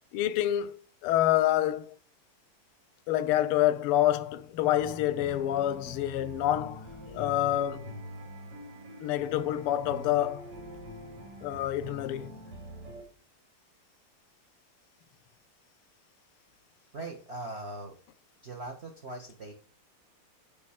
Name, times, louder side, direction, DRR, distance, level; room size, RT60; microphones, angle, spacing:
voice 1, 0.1-0.7 1.0-1.9 3.1-7.9 9.0-10.5 11.4-12.3, left 13 dB, 85° left, 1.5 m, -27 dB
sound 1, 4.8-13.0, equal, 85° right, 3.0 m, -44 dB
voice 2, 16.9-18.0 18.4-19.5, right 2 dB, 40° right, 1.0 m, -40 dB
8.6 x 3.2 x 6.3 m
omnidirectional pair, 2.4 m